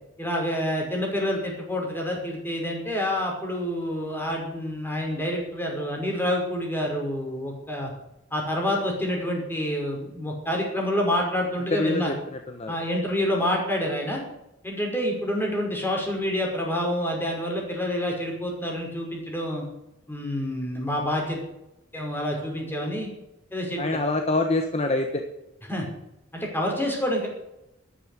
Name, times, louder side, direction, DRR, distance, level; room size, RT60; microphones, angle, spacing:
voice 1, 0.2-7.9 8.3-12.1 12.7-14.2 14.6-19.6 20.1-21.4 21.9-23.1 23.5-23.8 25.7-25.9 26.3-27.3, left 1 dB, 10° left, 0 dB, 5.6 m, -27 dB
voice 2, 11.7-12.8 23.8-25.2, left 2 dB, 35° left, 5 dB, 1.3 m, -25 dB
13.5 x 11.5 x 8.3 m, 0.90 s
head